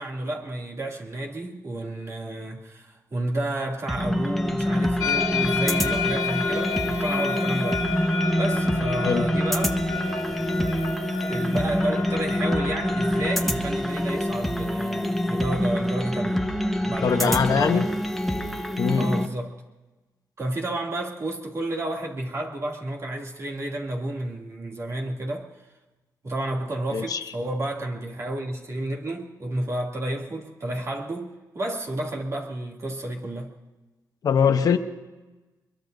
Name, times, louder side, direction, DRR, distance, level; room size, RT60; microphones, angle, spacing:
voice 1, 0.0-7.8 8.4-9.8 10.3-10.7 11.2-16.5 16.8-17.9 18.4-18.6 18.9-19.6 20.4-25.5 26.2-31.3 31.5-33.6, right 1 dB, 45° right, 2.7 m, -31 dB
sound 1, 3.9-19.3, left 1 dB, ahead, 1.2 m, -26 dB
sound 2, 5.0-13.5, left 5 dB, 80° left, 1.4 m, -31 dB
voice 2, 17.0-17.8 18.8-19.1 26.9-27.2 34.2-34.8, left 6 dB, 65° left, 0.9 m, -22 dB
23.0 x 22.5 x 2.7 m
cardioid pair, 85°, 7 cm